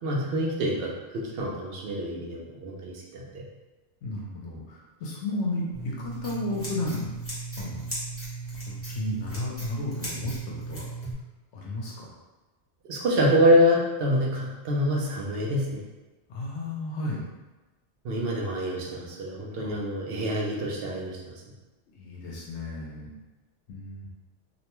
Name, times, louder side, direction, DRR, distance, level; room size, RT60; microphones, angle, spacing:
voice 1, 0.0-3.4 12.8-15.8 18.0-21.2, equal, 65° right, -2 dB, 0.8 m, -26 dB
voice 2, 4.0-7.2 7.6-7.8 8.6-10.3 10.7-10.9 11.5-12.1 16.3-17.2 19.6-19.7 22.0-23.1 23.7-24.1, left 2 dB, 75° left, -3 dB, 0.9 m, -33 dB
Scissors, 5.7-11.1, right 3 dB, 15° left, 0.8 m, -36 dB
2.6 x 2.1 x 2.9 m, 1.1 s
omnidirectional pair, 1.2 m